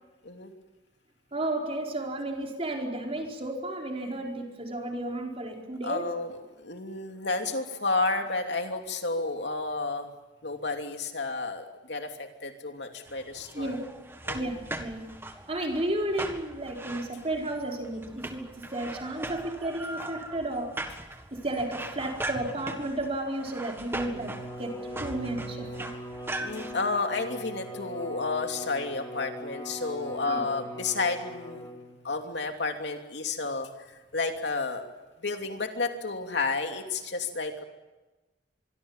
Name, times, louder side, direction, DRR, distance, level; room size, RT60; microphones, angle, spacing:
voice 1, 1.3-6.1 13.5-13.8 14.3-15.1 15.5-20.7 21.3-24.3 24.6-25.9 30.3-30.4, right 1 dB, 35° right, 1 dB, 4.5 m, -33 dB
voice 2, 5.8-10.1 10.4-13.8 14.2-14.5 26.4-31.7 32.0-33.7 34.1-34.8 35.2-37.6, left 3 dB, 70° left, 4 dB, 2.9 m, -31 dB
sound 1, 13.1-26.7, right 1 dB, 15° right, 1.8 m, -40 dB
Bowed string instrument, 23.8-32.1, equal, 20° left, 5.1 m, -41 dB
25.5 x 23.0 x 7.4 m, 1.1 s
head